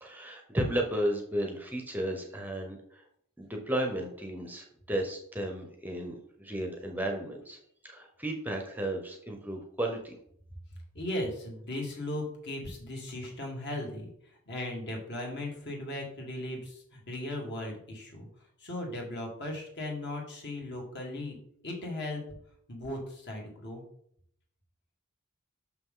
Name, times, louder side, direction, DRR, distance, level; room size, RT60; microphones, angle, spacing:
voice 1, 0.0-3.0 3.4-7.6 7.8-10.1, right 1 dB, 10° right, 2 dB, 0.7 m, -33 dB
voice 2, 10.9-18.3 18.6-21.4 21.6-22.2 22.7-23.8, left 1 dB, 50° left, -1 dB, 1.9 m, -37 dB
6.2 x 5.7 x 3.7 m, 0.67 s
head